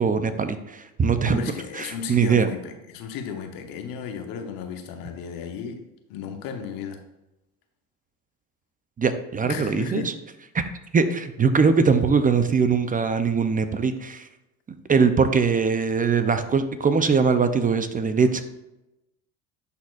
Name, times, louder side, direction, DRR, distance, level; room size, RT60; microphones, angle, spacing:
voice 1, 0.0-1.4 1.8-2.5 9.0-10.0 10.5-10.7 10.9-14.3 14.7-18.4, right 5 dB, 25° right, 10 dB, 0.5 m, -21 dB
voice 2, 1.3-5.8 6.1-7.0 9.4-10.1, left 6 dB, 70° left, 6 dB, 1.0 m, -34 dB
10.5 x 4.2 x 2.4 m, 0.93 s
supercardioid pair, 85°, 35 cm